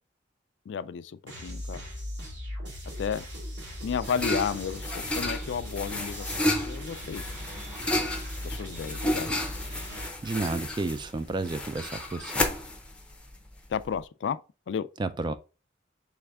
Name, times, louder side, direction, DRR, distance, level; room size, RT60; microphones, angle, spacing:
voice 1, 0.7-1.8 3.0-3.3 3.8-7.2 8.4-9.3 13.7-14.4 14.7-14.9, left 7 dB, 70° left, 0.3 m, -32 dB
sound 1, 1.3-10.1, equal, 80° right, 2.2 m, -39 dB
sound 2, 3.4-14.0, left 1 dB, 5° left, 0.7 m, -32 dB
voice 2, 10.2-12.5 15.0-15.3, right 3 dB, 25° right, 0.3 m, -31 dB
4.3 x 3.3 x 3.5 m
head